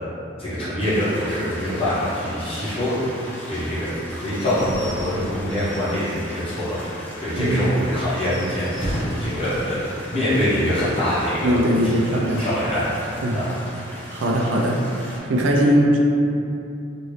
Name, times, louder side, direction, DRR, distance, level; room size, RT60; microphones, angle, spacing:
voice 1, 0.4-13.5, equal, 30° left, -12 dB, 1.1 m, -25 dB
sound 1, 0.8-15.2, equal, 10° left, 0.4 m, -39 dB
Slam / Squeak / Wood, 3.5-6.7 7.1-7.2 7.5-7.6 8.0-9.4, equal, 85° left, 1.0 m, -34 dB
voice 2, 7.3-7.7 11.4-12.4 13.2-13.4 14.1-14.8 15.2-16.0, equal, 80° right, -1 dB, 0.5 m, -20 dB
2.8 x 2.6 x 3.1 m, 2.7 s
head